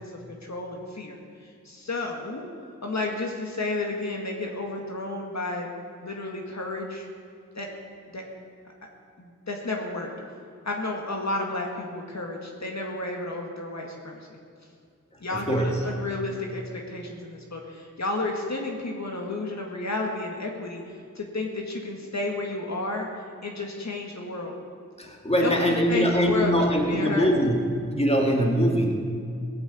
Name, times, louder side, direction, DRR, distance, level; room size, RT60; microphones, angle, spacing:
voice 1, 0.0-2.4 2.8-5.7 6.0-7.1 7.6-7.7 8.1-8.2 9.2-10.1 10.7-14.4 15.2-20.8 21.2-23.1 23.4-24.5 25.4-25.5 25.9-26.5 26.9-27.3, left 2 dB, 60° left, 0 dB, 1.9 m, -32 dB
voice 2, 15.1-15.8 25.0-28.9, equal, 20° left, 1 dB, 2.5 m, -23 dB
18.0 x 8.0 x 8.5 m, 2.3 s
wide cardioid pair, 65°, 31 cm